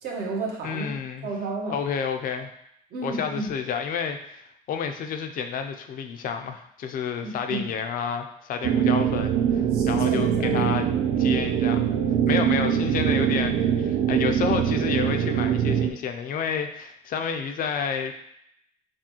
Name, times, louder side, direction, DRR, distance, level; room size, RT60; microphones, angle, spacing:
voice 1, 0.0-0.9 1.2-1.8 2.9-3.5 7.2-7.6 9.6-11.1, right 3 dB, 70° right, -1 dB, 1.1 m, -31 dB
voice 2, 0.6-1.3 1.7-2.5 3.0-4.4 4.7-10.9 11.2-11.8 12.3-18.1, left 6 dB, 55° left, 6 dB, 0.5 m, -30 dB
sound 1, 8.6-15.9, right 9 dB, 90° right, 0.4 m, -23 dB
6.0 x 2.3 x 2.9 m, 0.75 s
cardioid pair, 110°, 17 cm